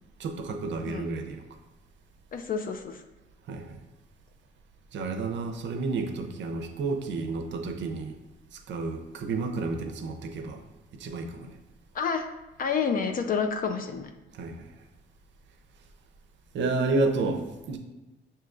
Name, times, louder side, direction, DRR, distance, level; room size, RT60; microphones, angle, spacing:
voice 1, 0.2-1.4 3.5-3.8 4.9-8.1 8.5-10.6 11.0-11.5 14.3-14.7 16.5-17.8, right 3 dB, 65° right, 5 dB, 0.6 m, -31 dB
voice 2, 2.3-3.0 11.9-12.3 12.6-14.1, left 6 dB, 45° left, 7 dB, 0.4 m, -29 dB
5.9 x 2.8 x 2.4 m, 1.0 s
cardioid pair, 90°, 20 cm